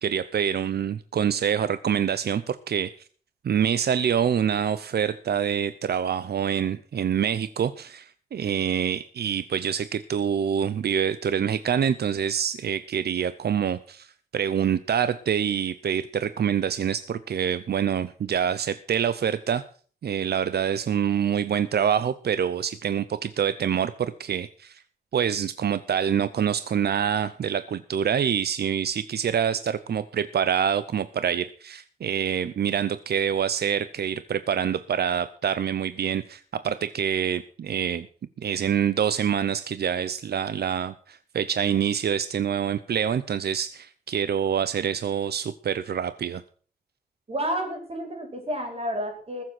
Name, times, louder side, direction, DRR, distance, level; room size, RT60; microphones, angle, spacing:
voice 1, 0.0-2.9 3.4-19.6 20.0-24.8 25.1-38.1 38.4-46.4, right 8 dB, 80° right, 14 dB, 0.7 m, -26 dB
voice 2, 47.3-49.4, equal, 35° right, 3 dB, 5.0 m, -30 dB
20.5 x 7.5 x 6.1 m, 0.44 s
wide cardioid pair, 140°, 17 cm